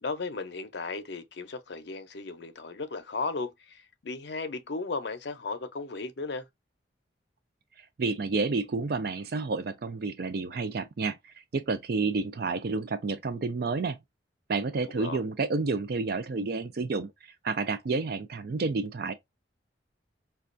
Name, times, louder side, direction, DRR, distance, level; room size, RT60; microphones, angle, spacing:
voice 1, 0.0-6.4 14.8-15.2, left 3 dB, 65° left, 0.6 m, -35 dB
voice 2, 7.8-14.0 14.5-19.1, right 4 dB, 55° right, 0.4 m, -30 dB
5.1 x 2.3 x 2.5 m
head